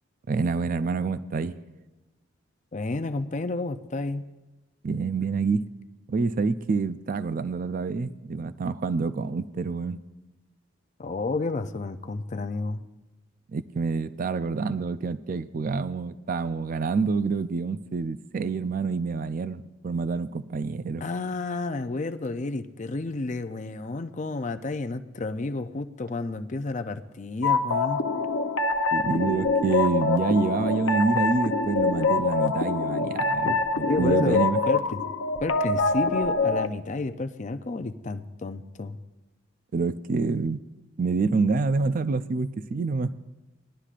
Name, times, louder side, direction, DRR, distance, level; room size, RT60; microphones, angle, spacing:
voice 1, 0.3-1.5 4.8-5.6 6.1-10.0 13.5-21.0 28.9-34.6 39.7-40.6 41.0-43.1, right 4 dB, 45° right, 13 dB, 0.4 m, -27 dB
voice 2, 2.7-4.2 11.0-12.8 21.0-28.0 33.4-33.6 33.9-35.0 35.4-39.0, left 3 dB, 35° left, 9 dB, 0.5 m, -31 dB
sound 1, 27.4-36.7, left 3 dB, 80° left, 0.7 m, -25 dB
19.5 x 11.5 x 2.5 m, 1.1 s
head